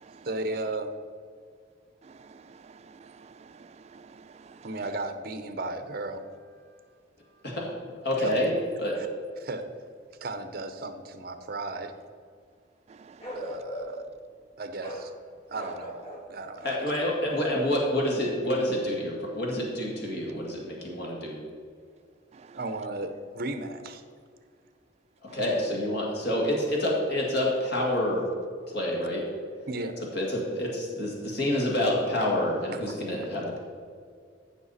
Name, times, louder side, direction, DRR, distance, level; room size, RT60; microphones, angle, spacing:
voice 1, 0.2-0.9 4.6-6.8 7.3-7.4 8.2-8.3 9.0-9.1 9.4-9.9 10.2-11.9 13.3-14.0 14.6-15.1 15.5-16.0 16.3-16.9 22.5-24.0 29.7-30.0 32.7-32.9, right 2 dB, 50° right, 8 dB, 0.8 m, -35 dB
voice 2, 2.1-2.4 2.7-3.3 3.6-4.6 13.1-13.3, right 5 dB, 35° right, 12 dB, 0.3 m, -51 dB
voice 3, 8.0-8.5 8.8-8.9 16.6-21.4 25.2-28.2 28.7-29.2 30.1-33.6, left 1 dB, 55° left, -2 dB, 1.9 m, -28 dB
Bark, 13.2-14.1 14.8-15.1 15.5-16.3 17.3-17.6, equal, 30° left, 2.0 m, -38 dB
14.5 x 5.9 x 4.2 m, 2.1 s
head